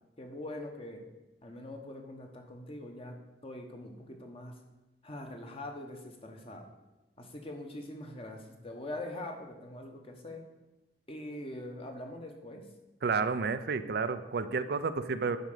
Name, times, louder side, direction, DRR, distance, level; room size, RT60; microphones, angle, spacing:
voice 1, 0.2-1.0 1.4-4.6 5.0-6.7 7.2-10.4 11.1-12.6, left 1 dB, 35° left, 3 dB, 1.2 m, -43 dB
voice 2, 13.0-15.4, right 4 dB, 60° right, 11 dB, 0.5 m, -31 dB
9.3 x 5.1 x 6.8 m, 1.1 s
head